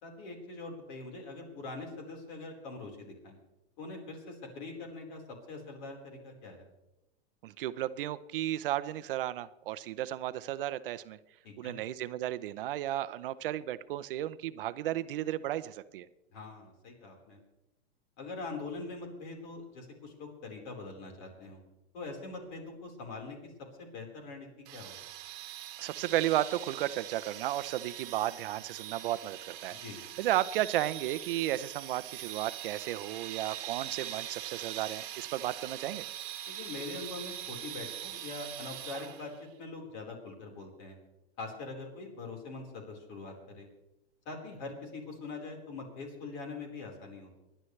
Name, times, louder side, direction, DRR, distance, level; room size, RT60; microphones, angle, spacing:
voice 1, 0.0-3.4 3.8-6.7 11.4-11.8 16.3-17.4 18.2-21.6 21.9-23.5 23.8-25.0 29.8-30.0 36.5-39.3 39.6-41.0 41.4-43.7 44.2-47.4, left 3 dB, 45° left, 1 dB, 4.5 m, -43 dB
voice 2, 7.4-11.2 11.6-16.1 25.8-29.8 30.2-36.1, right 13 dB, 55° right, 14 dB, 0.7 m, -33 dB
sound 1, 24.6-39.4, right 12 dB, 35° right, 1.7 m, -42 dB
29.0 x 11.0 x 3.3 m, 0.95 s
supercardioid pair, 160°, 32 cm